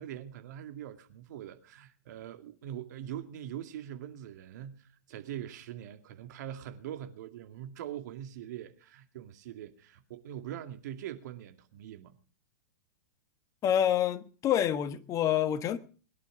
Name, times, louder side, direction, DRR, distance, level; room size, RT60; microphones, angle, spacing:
voice 1, 0.0-12.2, right 11 dB, 60° right, 2.3 m, -42 dB
voice 2, 13.6-15.8, left 10 dB, 30° left, 1.4 m, -27 dB
21.0 x 11.0 x 5.0 m
hypercardioid pair, 105°, 10 cm